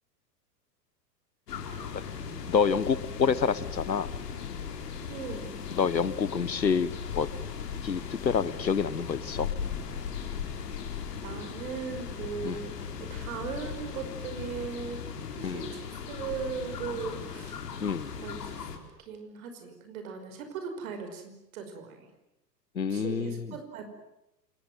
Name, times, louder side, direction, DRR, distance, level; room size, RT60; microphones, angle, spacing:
sound 1, 1.5-18.8, left 7 dB, 65° left, 4.8 m, -38 dB
voice 1, 2.5-4.1 5.8-6.9 7.1-7.3 7.8-9.5 12.4-12.6 15.4-15.7 17.8-18.1 22.7-23.4, left 6 dB, 85° left, 18 dB, 1.5 m, -27 dB
voice 2, 5.1-5.6 10.5-10.6 11.2-15.0 15.3-17.8 18.1-18.7 19.0-22.1 22.9-23.9, right 6 dB, 55° right, 7 dB, 5.6 m, -39 dB
28.0 x 21.0 x 9.3 m, 0.88 s
figure-of-eight pair, 105°, 50 cm